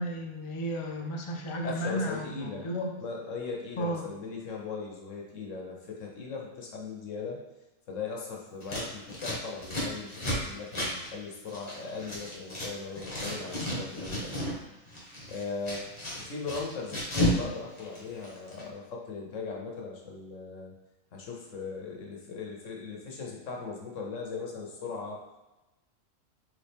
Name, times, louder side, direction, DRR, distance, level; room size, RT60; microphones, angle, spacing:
voice 1, 0.0-3.0 3.8-4.0, equal, 45° left, 1 dB, 0.4 m, -33 dB
voice 2, 1.6-2.7 3.0-7.4 7.9-14.4 15.3-15.9 16.1-20.7 21.1-25.2, left 4 dB, 70° left, -1 dB, 1.3 m, -38 dB
Scissors, 8.6-12.7 12.9-14.6 14.9-17.4 17.7-18.6, equal, 25° left, 1.3 m, -33 dB
4.2 x 3.4 x 3.5 m, 1.0 s
omnidirectional pair, 1.3 m